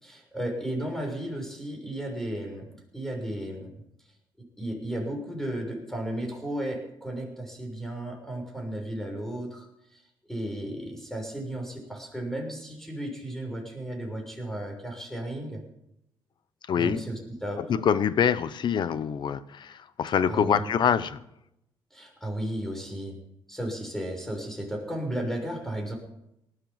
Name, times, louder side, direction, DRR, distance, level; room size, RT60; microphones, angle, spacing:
voice 1, 0.0-3.8 4.6-10.0 10.3-15.6 16.8-17.6 20.3-20.6 21.9-23.2 23.5-26.0, right 1 dB, 5° left, 6.4 m, -34 dB
voice 2, 16.7-17.0 17.6-21.2, left 8 dB, 55° left, 0.9 m, -25 dB
19.0 x 12.5 x 5.9 m
cardioid pair, 95°, 9 cm